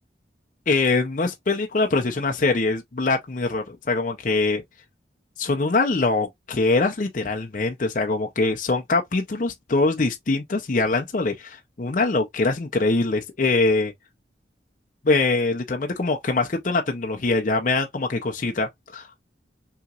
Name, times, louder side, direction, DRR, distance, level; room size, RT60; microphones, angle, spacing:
voice 1, 0.7-4.6 5.4-13.9 15.0-19.1, left 3 dB, 45° left, 0.6 m, -23 dB
5.6 x 3.0 x 2.4 m
head